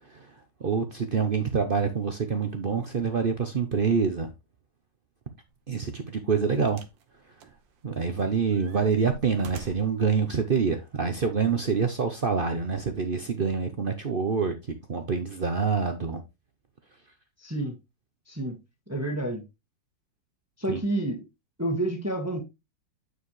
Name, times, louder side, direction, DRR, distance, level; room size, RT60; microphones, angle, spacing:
voice 1, 0.6-4.3 5.7-6.8 7.8-14.5 14.9-16.2 20.7-20.8, right 5 dB, 60° right, 0.5 m, -26 dB
sound 1, 5.5-5.7 6.7-7.0 7.4-8.1 8.5-10.0 10.9-11.0, right 5 dB, 85° right, 1.6 m, -47 dB
voice 2, 17.4-17.8 18.3-18.6 18.9-19.4 20.6-21.3 21.6-22.4, right 1 dB, 10° right, 1.3 m, -29 dB
9.3 x 4.7 x 3.2 m
omnidirectional pair, 2.0 m